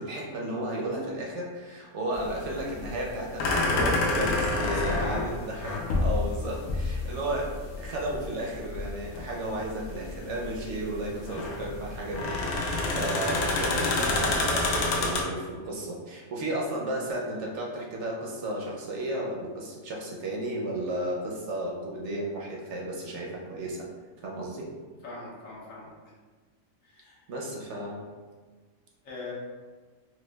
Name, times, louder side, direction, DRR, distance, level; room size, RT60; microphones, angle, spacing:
voice 1, 0.0-7.5 7.8-23.9 24.2-24.7 27.3-28.0, right 1 dB, 65° right, -3 dB, 0.8 m, -33 dB
sound 1, 2.1-15.2, left 2 dB, 85° left, 1.1 m, -28 dB
voice 2, 4.7-5.3 25.0-25.9 26.8-27.2 29.0-29.3, left 3 dB, 65° left, -5 dB, 1.2 m, -40 dB
4.6 x 2.1 x 2.2 m, 1.4 s
omnidirectional pair, 1.5 m